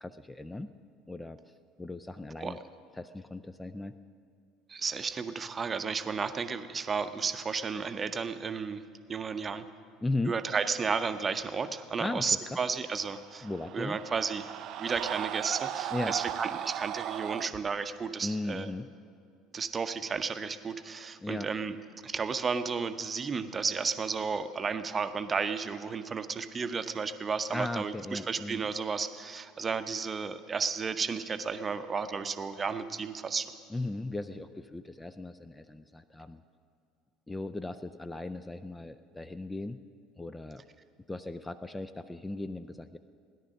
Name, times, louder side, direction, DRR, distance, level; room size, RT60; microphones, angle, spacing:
voice 1, 0.0-0.7 1.1-1.4 1.8-2.6 3.0-3.9 10.0-10.3 12.0-12.3 13.4-14.0 15.9-16.2 18.2-18.9 21.2-21.5 27.5-28.6 33.7-36.4 37.3-39.8 40.2-40.6 41.1-43.0, left 2 dB, 10° left, 11 dB, 0.5 m, -37 dB
voice 2, 4.7-8.8 9.1-9.7 10.2-13.5 13.7-14.5 14.8-18.7 19.5-21.8 22.0-33.5, right 5 dB, 25° right, 10 dB, 0.8 m, -33 dB
sound 1, 13.0-17.5, right 11 dB, 50° right, 0.4 m, -37 dB
17.0 x 11.0 x 6.3 m, 2.3 s
figure-of-eight pair, 65°, 0 cm